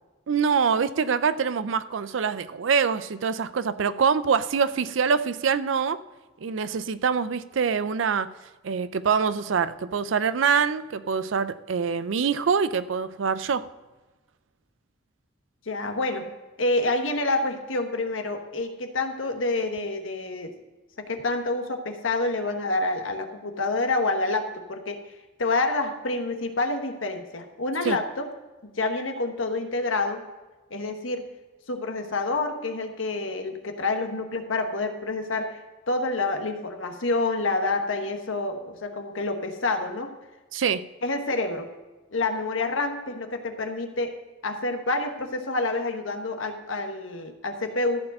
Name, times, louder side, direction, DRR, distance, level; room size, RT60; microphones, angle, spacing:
voice 1, 0.3-6.0 6.4-8.3 8.6-13.6 27.8-28.0 40.5-40.8, right 6 dB, 75° right, 14 dB, 0.4 m, -25 dB
voice 2, 15.7-16.3 16.6-20.5 21.0-25.0 25.4-28.3 28.8-30.2 30.7-31.2 31.7-40.1 41.0-41.7 42.1-44.1 44.4-48.0, left 2 dB, 85° left, 6 dB, 1.2 m, -28 dB
14.0 x 4.8 x 7.7 m, 1.2 s
head